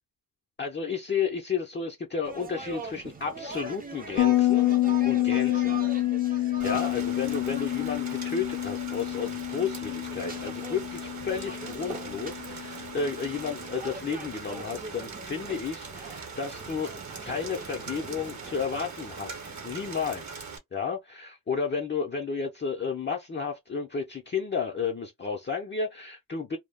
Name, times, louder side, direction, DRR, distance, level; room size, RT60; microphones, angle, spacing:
voice 1, 0.6-4.7 5.0-5.8 6.3-20.4 20.7-26.6, left 5 dB, 30° left, 0.5 m, -32 dB
sound 1, 2.2-20.3, right 2 dB, 25° right, 0.5 m, -43 dB
Bass guitar, 4.2-13.5, left 15 dB, 85° left, 0.5 m, -28 dB
Rain, 6.6-20.6, right 5 dB, 50° right, 0.9 m, -42 dB
2.2 x 2.0 x 3.3 m
wide cardioid pair, 100°, 36 cm